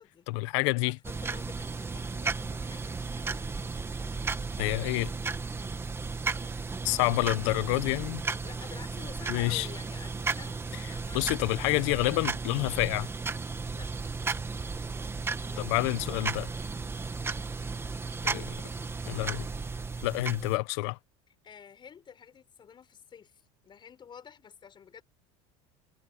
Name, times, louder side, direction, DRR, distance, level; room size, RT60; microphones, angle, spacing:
voice 1, 0.3-1.0 4.6-5.1 6.8-8.2 9.3-9.7 11.1-13.1 15.6-16.5 18.2-18.6 19.1-19.5 20.0-21.0, left 23 dB, 75° left, 1.2 m, -28 dB
voice 2, 0.8-3.8 8.2-11.8 13.7-13.9 15.4-16.3 17.0-17.2 21.4-25.0, left 7 dB, 30° left, 5.5 m, -51 dB
sound 1, 1.0-20.6, right 4 dB, 15° right, 2.0 m, -34 dB
supercardioid pair, 115°, 15 cm